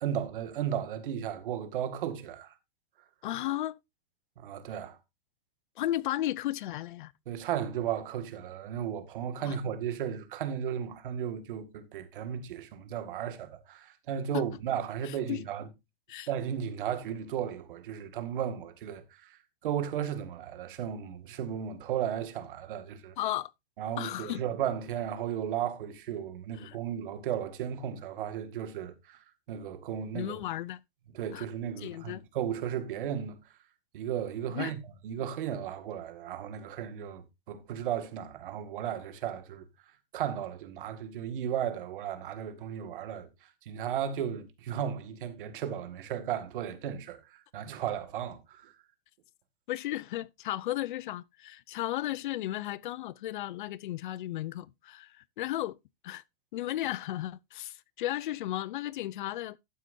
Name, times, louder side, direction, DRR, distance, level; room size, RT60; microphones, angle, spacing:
voice 1, 0.0-2.5 4.4-5.0 7.3-15.7 16.3-19.4 19.6-23.1 23.8-29.2 29.5-30.3 31.1-33.4 33.9-34.8 35.0-39.7 40.1-43.3 43.7-48.7, right 9 dB, 60° right, 2.0 m, -35 dB
voice 2, 3.2-3.8 5.8-7.1 9.4-9.6 14.3-14.5 15.0-15.4 16.1-16.3 23.2-23.5 24.0-24.4 26.6-26.8 30.1-30.8 31.3-31.4 31.8-32.2 34.5-34.7 49.7-55.8 56.0-56.2 56.5-59.6, left 14 dB, 55° left, 0.5 m, -34 dB
12.0 x 9.2 x 2.6 m
supercardioid pair, 165°, 29 cm